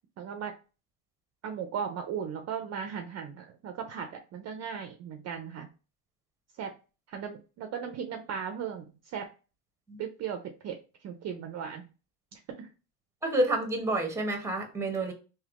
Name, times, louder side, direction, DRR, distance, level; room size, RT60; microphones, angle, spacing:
voice 1, 0.2-0.5 1.4-5.7 6.6-6.7 7.1-9.3 10.0-10.8 11.0-11.8 12.3-12.7, right 7 dB, 40° right, 6 dB, 0.4 m, -37 dB
voice 2, 13.2-15.1, right 1 dB, 5° right, 4 dB, 0.7 m, -29 dB
3.4 x 2.7 x 2.4 m, 0.33 s
cardioid pair, 120°, 44 cm